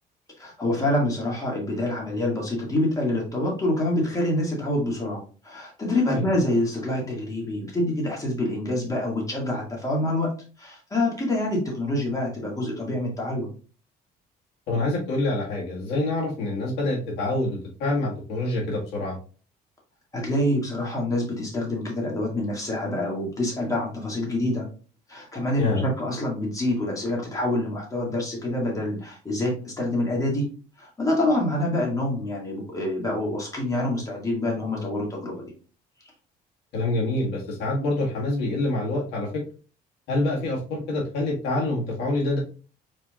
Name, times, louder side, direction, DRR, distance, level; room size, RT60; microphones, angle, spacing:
voice 1, 0.4-13.5 20.1-24.7 25.1-30.5 30.8-35.4, left 1 dB, 20° left, -2 dB, 2.0 m, -26 dB
voice 2, 14.7-19.2 25.6-25.9 36.7-39.4 40.1-42.4, left 2 dB, 90° left, -3 dB, 1.8 m, -26 dB
4.7 x 4.4 x 2.4 m, 0.37 s
cardioid pair, 110°, 17 cm